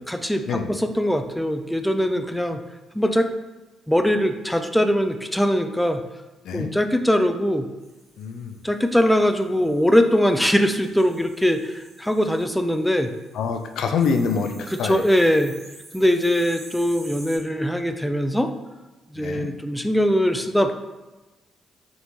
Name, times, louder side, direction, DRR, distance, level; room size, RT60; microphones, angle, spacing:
voice 1, 0.1-2.6 2.9-3.3 3.9-6.0 6.5-7.7 8.6-13.1 14.7-15.5 15.9-18.5 19.1-20.7, equal, 5° left, 7 dB, 0.3 m, -21 dB
sound 1, 7.8-17.4, right 2 dB, 50° right, 1.3 m, -49 dB
voice 2, 8.2-8.5 13.3-15.0 19.2-19.5, left 5 dB, 75° left, 6 dB, 0.4 m, -25 dB
3.8 x 3.5 x 3.1 m, 1.1 s
cardioid pair, 90°, 0 cm